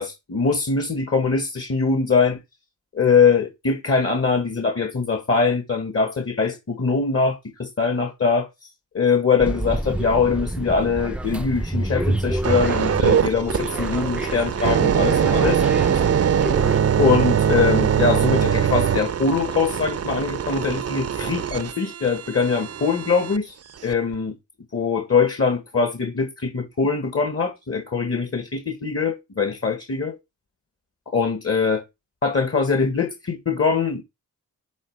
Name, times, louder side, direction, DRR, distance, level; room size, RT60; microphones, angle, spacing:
voice 1, 0.0-2.4 2.9-8.5 8.9-16.0 17.0-23.5 23.8-24.4 24.7-30.2 31.1-31.8 32.2-34.0, left 5 dB, 45° left, 1.7 m, -22 dB
sound 1, 9.4-16.8, right 1 dB, 5° right, 0.6 m, -28 dB
sound 2, 12.4-23.4 23.9-24.1, right 8 dB, 50° right, 0.6 m, -22 dB
9.5 x 3.2 x 4.8 m
cardioid pair, 60°, 33 cm